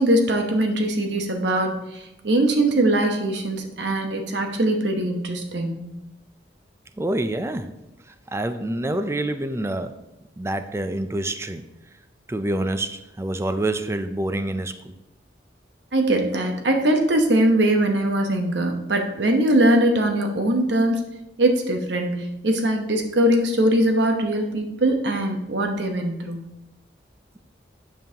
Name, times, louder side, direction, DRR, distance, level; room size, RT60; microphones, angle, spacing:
voice 1, 0.0-1.9 2.2-5.8 15.9-21.0 21.4-26.4, right 1 dB, 75° right, 4 dB, 0.9 m, -21 dB
voice 2, 7.0-7.7 8.3-9.9 10.4-11.6 12.3-14.9, right 1 dB, 15° right, 9 dB, 0.4 m, -27 dB
9.2 x 5.4 x 2.9 m, 0.92 s
head